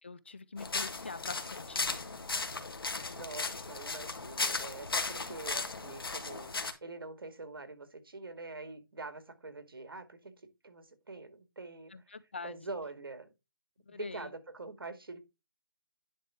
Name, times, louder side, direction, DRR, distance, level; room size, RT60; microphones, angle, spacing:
voice 1, 0.0-2.0 11.9-12.6 13.9-14.3, left 4 dB, 30° left, 0.4 m, -44 dB
sound 1, 0.6-6.7, left 4 dB, 85° left, 1.5 m, -36 dB
voice 2, 3.1-6.5 6.8-10.3 10.6-12.0 12.4-13.3 13.9-15.2, right 3 dB, 85° right, 2.0 m, -44 dB
10.0 x 3.4 x 4.6 m
hypercardioid pair, 175°, 12 cm